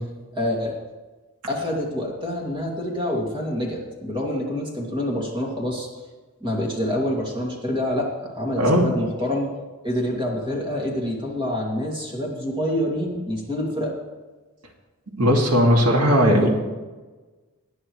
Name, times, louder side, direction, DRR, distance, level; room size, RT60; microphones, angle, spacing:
voice 1, 0.3-0.7 1.5-5.9 6.4-8.1 8.3-9.5 9.8-13.9 16.4-16.5, left 1 dB, 20° right, -2 dB, 2.5 m, -26 dB
voice 2, 8.6-8.9 15.2-16.5, equal, 85° right, 0 dB, 2.2 m, -17 dB
19.0 x 9.8 x 3.2 m, 1.3 s
head